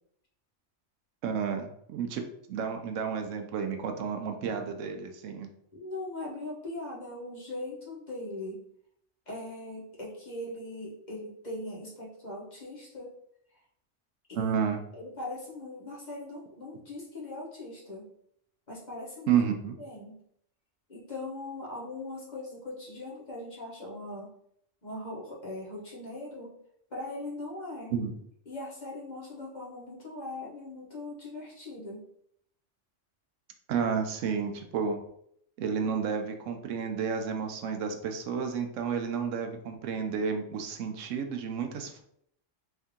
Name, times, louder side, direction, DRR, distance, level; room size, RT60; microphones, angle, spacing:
voice 1, 1.2-2.2 2.5-5.5 14.3-14.8 19.3-19.8 27.9-28.1 33.7-35.0 35.6-42.0, right 6 dB, 80° right, 5 dB, 0.9 m, -31 dB
voice 2, 5.7-8.6 9.3-13.1 14.3-14.5 14.9-18.1 18.7-19.4 19.8-20.2 20.9-24.3 24.8-26.5 26.9-27.9 28.5-32.0, left 2 dB, 40° left, -5 dB, 1.1 m, -40 dB
3.5 x 2.7 x 3.6 m, 0.71 s
omnidirectional pair, 1.3 m